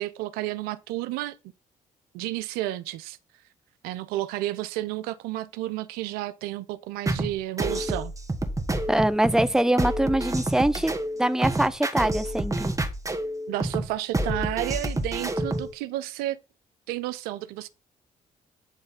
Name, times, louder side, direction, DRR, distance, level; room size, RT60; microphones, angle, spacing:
voice 1, 0.0-1.4 2.1-3.2 3.8-8.1 13.5-16.4 16.9-17.7, right 15 dB, 85° right, 0.5 m, -31 dB
sound 1, 7.1-15.7, right 1 dB, 20° right, 1.4 m, -28 dB
voice 2, 8.9-10.9 11.2-12.7, right 1 dB, 5° right, 0.5 m, -23 dB
9.0 x 3.2 x 4.1 m
hypercardioid pair, 50°, 15 cm